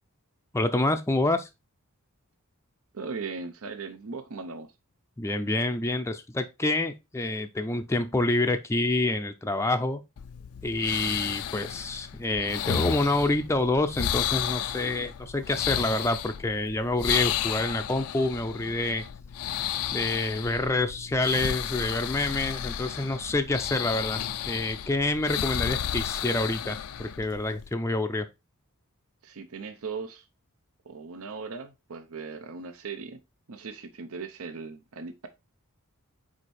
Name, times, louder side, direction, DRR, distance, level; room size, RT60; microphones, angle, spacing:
voice 1, 0.5-1.5 5.2-10.0 10.6-19.0 19.9-28.3, left 2 dB, 15° left, 0.5 m, -27 dB
voice 2, 2.9-4.7 29.2-30.3 30.8-33.2 33.5-35.3, right 4 dB, 70° right, 0.7 m, -38 dB
sound 1, 10.2-27.7, left 10 dB, 75° left, 0.5 m, -33 dB
4.9 x 4.5 x 4.2 m
head